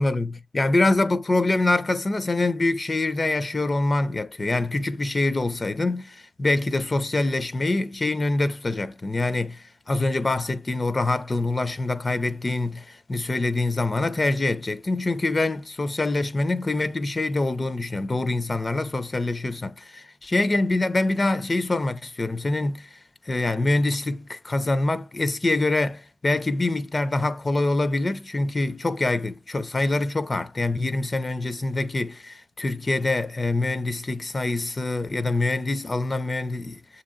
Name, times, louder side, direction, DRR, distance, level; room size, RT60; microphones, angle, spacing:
voice 1, 0.0-37.0, left 2 dB, 30° left, 0.4 m, -25 dB
6.8 x 2.7 x 2.4 m
cardioid pair, 95°, 0 cm